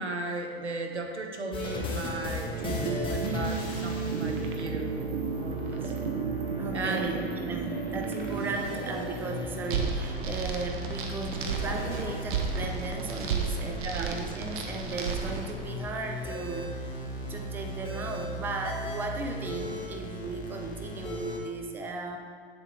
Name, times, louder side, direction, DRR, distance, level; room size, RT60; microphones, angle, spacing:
voice 1, 0.0-5.0 5.4-5.9 6.7-7.2 13.8-14.2, right 2 dB, 90° right, 3 dB, 1.0 m, -35 dB
sound 1, 1.5-21.4, left 1 dB, 15° left, 1.2 m, -37 dB
sound 2, 2.5-15.5, right 5 dB, 50° right, 1.0 m, -34 dB
voice 2, 6.6-17.0 17.3-22.2, right 3 dB, 5° right, 3 dB, 0.4 m, -36 dB
8.1 x 7.2 x 3.3 m, 2.1 s
figure-of-eight pair, 100°, 33 cm